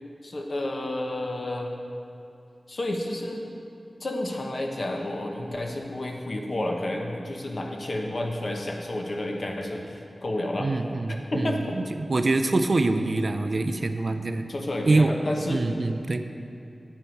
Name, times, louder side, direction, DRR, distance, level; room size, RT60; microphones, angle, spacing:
voice 1, 0.2-1.7 2.7-3.4 4.0-10.7 11.1-11.8 12.9-13.0 14.5-15.6, left 1 dB, 50° left, 2 dB, 1.1 m, -30 dB
voice 2, 10.6-11.5 12.1-14.5 14.9-15.1 15.5-16.2, right 2 dB, 50° right, 8 dB, 0.4 m, -24 dB
9.7 x 9.0 x 4.6 m, 2.6 s
wide cardioid pair, 100°, 0 cm